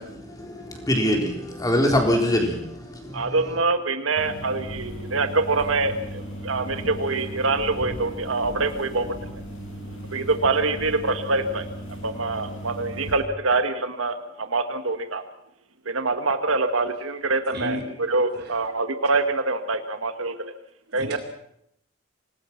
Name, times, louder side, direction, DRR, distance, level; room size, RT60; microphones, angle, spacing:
voice 1, 0.0-3.4, left 1 dB, 20° left, 2 dB, 4.1 m, -24 dB
voice 2, 3.1-9.4 10.0-15.2 15.8-20.3 20.9-21.2, right 3 dB, 85° right, 8 dB, 1.7 m, -25 dB
sound 1, 4.2-13.2, equal, 75° left, 6.6 m, -36 dB
voice 3, 17.5-17.8 18.3-18.5 20.9-21.2, equal, 55° right, 4 dB, 5.2 m, -33 dB
25.5 x 19.5 x 5.9 m, 0.74 s
head